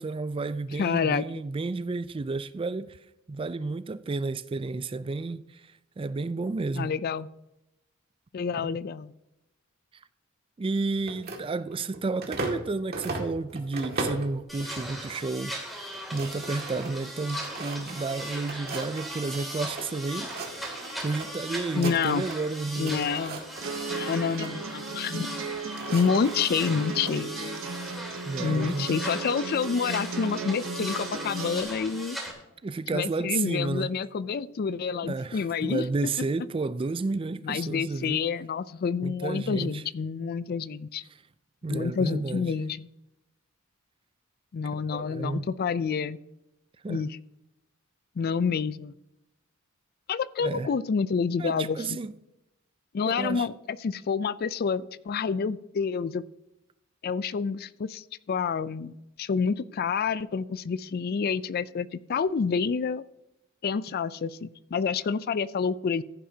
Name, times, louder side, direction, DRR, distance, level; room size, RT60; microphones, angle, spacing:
voice 1, 0.0-3.0 3.3-5.6 6.0-6.9 10.6-20.3 21.0-23.1 28.3-28.9 32.6-33.9 35.0-38.2 39.0-39.8 41.6-42.5 44.7-45.5 46.8-47.0 50.4-50.7 51.4-52.1 53.0-53.5, right 3 dB, 25° right, 0.3 m, -31 dB
voice 2, 0.7-1.3 6.7-7.3 8.3-9.1 21.7-22.2 22.8-23.4 23.9-25.3 25.9-27.3 28.4-32.2 32.9-36.1 37.4-41.0 41.7-42.9 44.5-46.2 46.9-47.2 48.2-48.9 50.1-52.0 52.9-56.2 57.0-63.1 63.6-66.0, left 6 dB, 45° left, 0.4 m, -28 dB
sound 1, 11.0-12.6 12.9-14.3 14.8-15.2 15.5-15.6 15.9-19.9 20.2-21.3 21.6-22.5 22.7-24.5 25.3-27.1, right 2 dB, 50° right, 2.1 m, -38 dB
sound 2, 14.5-32.3, equal, ahead, 2.6 m, -39 dB
sound 3, 23.6-31.6, right 4 dB, 65° right, 1.0 m, -36 dB
15.0 x 10.0 x 2.8 m
head